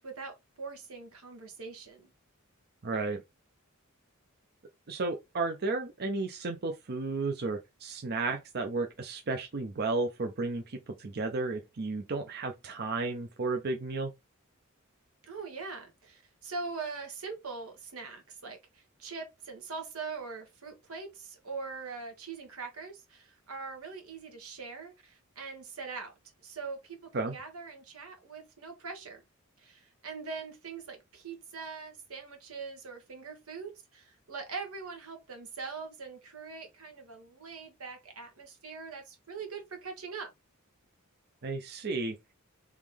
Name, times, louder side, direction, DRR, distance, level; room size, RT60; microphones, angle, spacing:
voice 1, 0.0-2.1 15.2-26.1 26.4-29.2 29.6-40.3, right 4 dB, 90° right, 1.5 m, -42 dB
voice 2, 2.8-3.2 4.9-14.1 27.1-27.3 41.4-42.2, right 3 dB, 50° right, 0.6 m, -33 dB
3.6 x 3.0 x 3.4 m
head